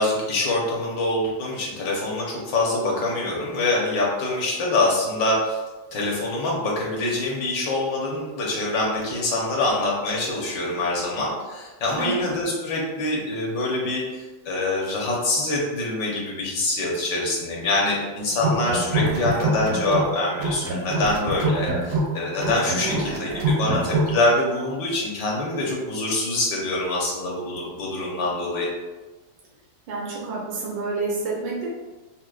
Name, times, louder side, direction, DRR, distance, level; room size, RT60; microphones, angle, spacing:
voice 1, 0.0-5.6 5.9-28.7, left 2 dB, 75° left, -3 dB, 1.5 m, -25 dB
voice 2, 12.0-12.3 22.8-23.1 29.9-31.7, right 3 dB, 85° right, -5 dB, 1.5 m, -29 dB
sound 1, 18.3-20.1 20.4-24.1, right 2 dB, 65° right, 0.9 m, -25 dB
6.0 x 2.0 x 2.4 m, 1.2 s
omnidirectional pair, 1.9 m